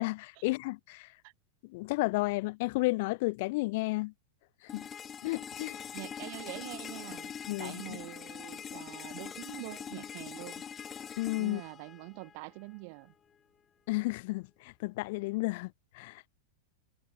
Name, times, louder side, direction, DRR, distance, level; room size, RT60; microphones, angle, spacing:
voice 1, 0.0-1.1 1.7-4.1 4.7-4.9 5.2-5.8 7.5-8.0 11.2-11.6 13.9-16.3, left 23 dB, 50° left, 0.6 m, -32 dB
sound 1, 4.7-12.7, left 8 dB, 20° left, 7.8 m, -43 dB
voice 2, 5.9-10.6 11.4-13.1, right 33 dB, 45° right, 4.4 m, -45 dB
figure-of-eight pair, 90°, 0 cm